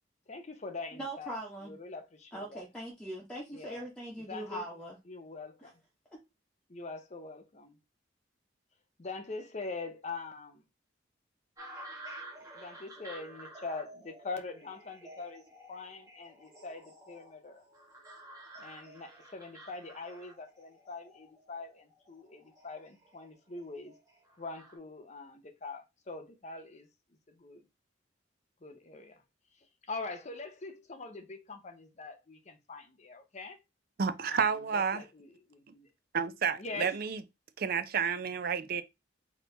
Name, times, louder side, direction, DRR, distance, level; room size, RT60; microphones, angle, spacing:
voice 1, 0.3-1.3 1.6-2.6 3.5-3.8 4.3-4.7 5.1-5.8 6.7-7.8 9.0-10.6 12.5-17.6 18.6-23.9 24.4-26.9 27.3-27.6 28.6-29.2 29.8-33.6 34.3-35.9 36.6-37.0, left 3 dB, 40° left, 0.7 m, -43 dB
voice 2, 0.9-1.7 2.3-5.0 5.6-5.7 6.1-6.2, right 1 dB, 5° left, 0.9 m, -41 dB
sound 1, 11.6-24.8, right 1 dB, 20° right, 1.6 m, -51 dB
voice 3, 34.0-35.0 36.1-37.2 37.6-38.8, right 6 dB, 55° right, 0.5 m, -30 dB
4.1 x 2.8 x 3.3 m
head